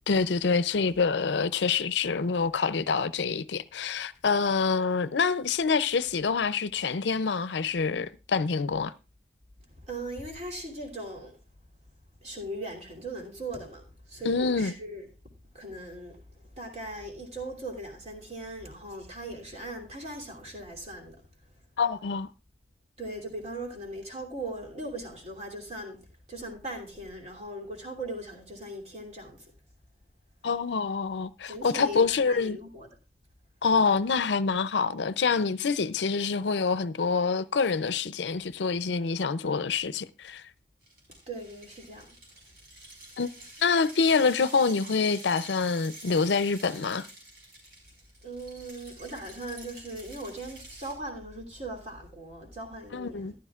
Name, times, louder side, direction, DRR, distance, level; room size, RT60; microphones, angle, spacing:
voice 1, 0.1-8.9 14.2-14.7 21.8-22.3 30.4-32.6 33.6-40.4 43.2-47.1 52.9-53.3, left 5 dB, 80° left, 0.5 m, -26 dB
voice 2, 9.8-11.4 12.2-15.0 15.5-16.2 16.5-21.2 23.0-26.0 26.3-29.5 31.5-32.9 41.3-42.1 48.2-53.4, right 1 dB, 35° right, 2.9 m, -39 dB
sound 1, 40.8-50.9, right 1 dB, 55° right, 4.9 m, -48 dB
14.5 x 11.5 x 2.4 m
head